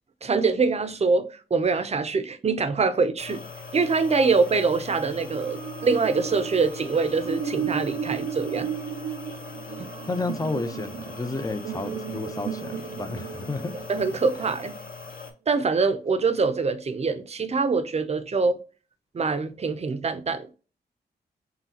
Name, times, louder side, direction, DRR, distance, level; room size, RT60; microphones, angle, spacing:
voice 1, 0.2-3.4 3.7-8.7 13.9-14.8 15.5-18.6 19.1-20.5, right 4 dB, 35° right, 0.6 m, -24 dB
sound 1, 3.2-15.3, left 4 dB, 50° left, 1.0 m, -41 dB
sound 2, 5.2-14.5, right 7 dB, 80° right, 0.5 m, -35 dB
voice 2, 10.1-13.7, left 3 dB, 20° left, 0.6 m, -31 dB
5.6 x 2.3 x 2.8 m
cardioid pair, 85°, 18 cm